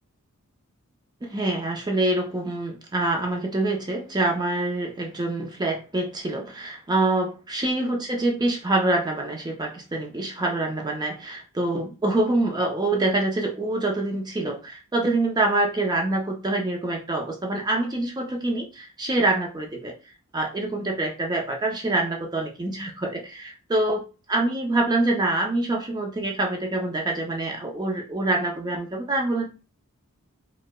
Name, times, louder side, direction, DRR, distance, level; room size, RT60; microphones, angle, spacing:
voice 1, 1.2-19.9 20.3-29.5, right 2 dB, 20° right, 2 dB, 0.5 m, -25 dB
4.5 x 2.0 x 2.2 m, 0.31 s
head